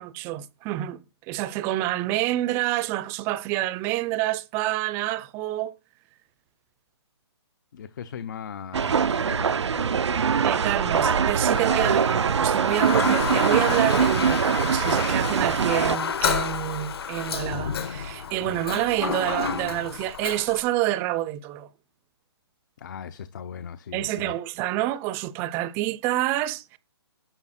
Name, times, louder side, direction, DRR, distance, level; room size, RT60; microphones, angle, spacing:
voice 1, 0.0-5.7 10.4-21.7 23.9-26.8, right 15 dB, 15° right, 0.7 m, -28 dB
voice 2, 7.7-10.5 22.8-24.3, left 7 dB, 45° left, 0.8 m, -39 dB
sound 1, 8.7-16.0, right 6 dB, 80° right, 0.7 m, -23 dB
Toilet flush, 11.5-20.6, left 6 dB, 60° left, 1.8 m, -30 dB
12.0 x 6.9 x 4.3 m
hypercardioid pair, 160°, 14 cm